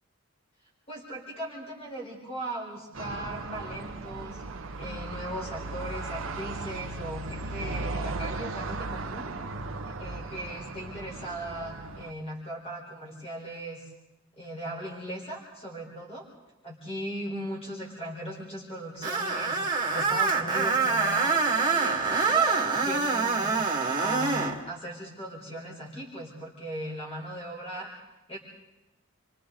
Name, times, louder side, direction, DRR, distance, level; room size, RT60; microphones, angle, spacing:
voice 1, 0.9-4.4 4.8-9.3 10.0-13.9 14.4-16.3 16.6-23.7 23.9-28.0 28.3-28.4, right 1 dB, 25° left, -2 dB, 4.2 m, -38 dB
sound 1, 2.9-12.1, right 3 dB, 65° right, 0.9 m, -36 dB
Screech, 19.0-24.6, right 4 dB, 20° right, 2.0 m, -25 dB
28.5 x 24.0 x 3.9 m, 0.96 s
head